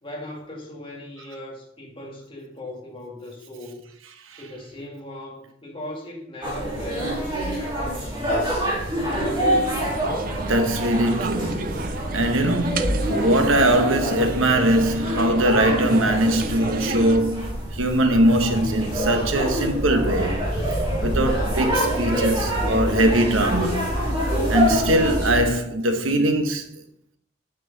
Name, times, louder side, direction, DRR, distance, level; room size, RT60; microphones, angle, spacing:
voice 1, 0.0-3.8 4.4-8.6, left 1 dB, 25° left, 1.9 m, -38 dB
sound 1, 6.4-25.4, equal, 25° right, 2.5 m, -26 dB
sound 2, 9.1-17.2, right 4 dB, 45° right, 0.5 m, -33 dB
voice 2, 10.4-20.4 21.0-24.0 24.5-26.7, right 1 dB, 75° right, 1.1 m, -21 dB
9.1 x 6.3 x 4.0 m
head